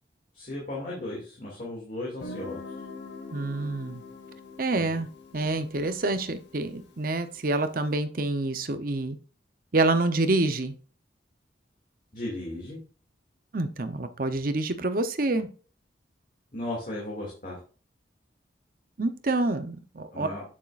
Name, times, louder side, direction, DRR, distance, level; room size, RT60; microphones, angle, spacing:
voice 1, 0.3-2.6 4.7-4.9 12.1-12.8 16.5-17.6 20.1-20.4, left 1 dB, 45° left, -4 dB, 2.4 m, -35 dB
Guitar, 2.2-7.8, left 3 dB, 75° left, 1.6 m, -44 dB
voice 2, 3.3-4.0 4.6-5.1 5.3-9.2 9.7-10.7 13.5-15.5 19.0-20.3, right 2 dB, 50° right, 10 dB, 0.8 m, -27 dB
8.5 x 7.3 x 2.5 m, 0.38 s
head